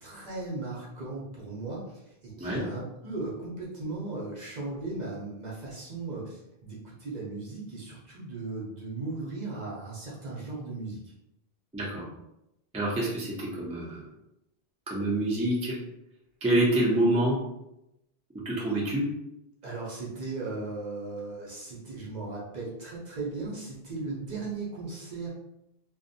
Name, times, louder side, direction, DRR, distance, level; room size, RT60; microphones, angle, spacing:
voice 1, 0.0-11.0 19.6-25.3, right 3 dB, 50° right, -5 dB, 0.7 m, -37 dB
voice 2, 11.7-12.1 12.7-14.1 14.9-15.8 16.4-17.4 18.4-19.1, right 1 dB, 10° right, -5 dB, 0.4 m, -26 dB
2.5 x 2.1 x 2.5 m, 0.86 s
omnidirectional pair, 1.0 m